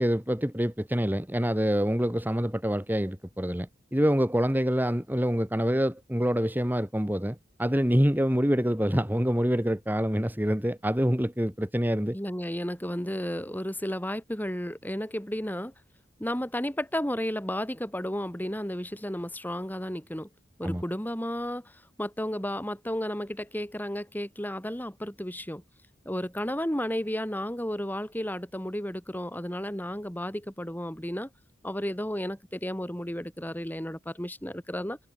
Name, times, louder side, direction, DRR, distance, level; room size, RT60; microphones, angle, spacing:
voice 1, 0.0-12.2 20.6-20.8, equal, 10° right, 2.0 m, -26 dB
voice 2, 12.1-15.7 16.2-20.3 20.6-21.7 22.0-25.6 26.0-31.3 31.6-35.0, equal, 10° left, 4.1 m, -33 dB
head